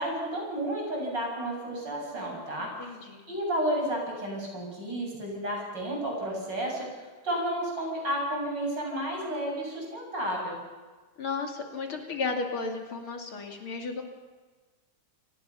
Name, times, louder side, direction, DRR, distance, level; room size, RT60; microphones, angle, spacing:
voice 1, 0.0-2.7 3.3-10.6, right 1 dB, 50° right, -1 dB, 8.3 m, -32 dB
voice 2, 2.6-3.3 11.2-14.0, left 4 dB, 70° left, 2 dB, 3.4 m, -34 dB
29.5 x 19.0 x 5.8 m, 1.3 s
omnidirectional pair, 2.4 m